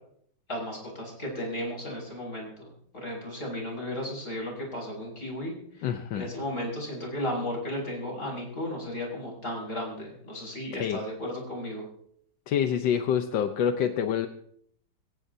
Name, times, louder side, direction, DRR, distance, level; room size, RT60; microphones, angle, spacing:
voice 1, 0.5-2.7 3.0-5.5 6.1-11.8, left 1 dB, 45° left, -1 dB, 6.7 m, -34 dB
voice 2, 5.8-6.3 10.7-11.0 12.5-14.3, left 8 dB, 80° left, 7 dB, 1.5 m, -27 dB
24.5 x 16.5 x 2.7 m, 0.67 s
omnidirectional pair, 2.0 m